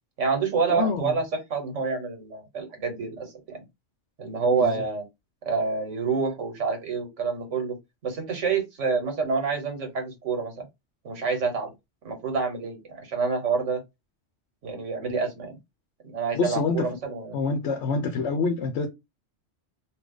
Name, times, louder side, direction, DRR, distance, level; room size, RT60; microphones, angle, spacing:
voice 1, 0.2-1.2 1.5-3.6 4.2-5.0 5.4-7.8 8.0-10.7 11.0-11.7 12.0-13.8 14.6-15.6 16.0-17.3, right 5 dB, 90° right, 1.5 m, -27 dB
voice 2, 0.7-1.1 4.6-4.7 16.3-16.9 17.3-18.9, left 4 dB, 75° left, 0.9 m, -26 dB
2.8 x 2.4 x 3.7 m
omnidirectional pair, 1.2 m